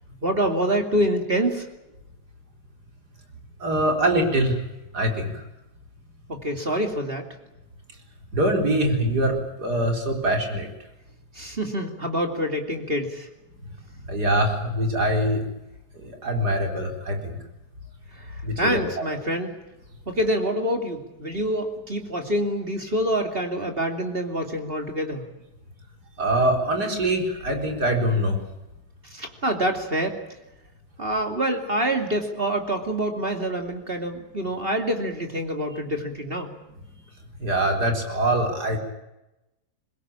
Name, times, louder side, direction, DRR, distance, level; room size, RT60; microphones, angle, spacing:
voice 1, 0.2-1.7 6.3-7.3 11.3-13.3 18.2-19.5 20.1-25.3 29.1-30.2 31.0-36.6, right 1 dB, 35° right, 5 dB, 2.9 m, -26 dB
voice 2, 3.6-4.6 4.9-5.4 8.3-10.7 14.1-15.4 16.0-17.4 18.4-18.8 26.2-28.4 37.4-38.8, right 1 dB, 70° right, 3 dB, 4.8 m, -23 dB
23.5 x 21.0 x 8.8 m, 0.95 s
omnidirectional pair, 1.8 m